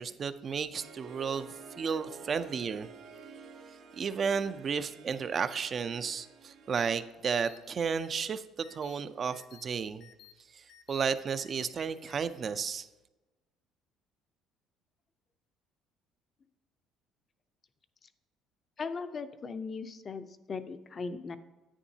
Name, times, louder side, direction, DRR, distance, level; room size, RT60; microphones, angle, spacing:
voice 1, 0.0-1.5 1.8-2.9 3.9-10.1 10.5-12.9, right 6 dB, 35° right, 12 dB, 0.5 m, -33 dB
Harp, 0.7-7.0, right 4 dB, 65° right, 1.6 m, -50 dB
sound 1, 6.8-6.9 7.3-7.6 7.9-8.3 8.6-8.9 9.3-9.6 10.0-10.3 10.7-11.0 11.4-11.7 12.1-12.2, left 11 dB, 60° left, 0.9 m, -55 dB
voice 2, 18.8-21.4, left 4 dB, 35° left, 10 dB, 0.6 m, -38 dB
9.9 x 9.3 x 2.8 m, 1.1 s
cardioid pair, 120°, 0 cm